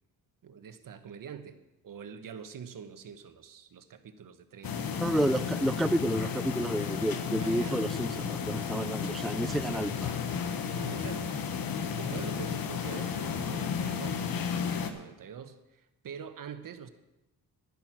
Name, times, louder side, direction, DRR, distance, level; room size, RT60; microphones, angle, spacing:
voice 1, 0.4-1.6 1.8-5.0 7.4-7.8 10.7-11.3 11.8-14.3 14.8-16.9, right 7 dB, 60° right, 9 dB, 1.2 m, -45 dB
sound 1, 4.6-14.9, left 7 dB, 70° left, 1.2 m, -33 dB
voice 2, 5.0-10.2, right 1 dB, ahead, 12 dB, 0.4 m, -30 dB
11.0 x 10.5 x 6.0 m, 0.97 s
cardioid pair, 80°, 36 cm